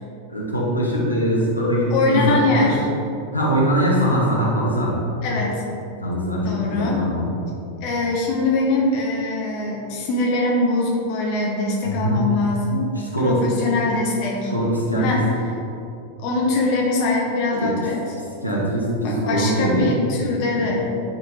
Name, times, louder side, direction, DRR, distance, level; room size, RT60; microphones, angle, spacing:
voice 1, 0.3-2.7 3.3-4.9 6.0-7.3 11.8-12.2 12.9-13.4 14.5-15.2 17.5-17.7 18.4-19.8 20.7-20.8, equal, 90° left, -6 dB, 1.4 m, -22 dB
voice 2, 1.9-2.9 5.2-5.6 6.4-7.0 7.8-12.9 13.2-14.5 15.0-15.3 16.2-18.1 19.0-20.8, left 2 dB, 45° left, -2 dB, 1.1 m, -22 dB
9.6 x 3.8 x 3.6 m, 2.7 s
figure-of-eight pair, 90°, 0 cm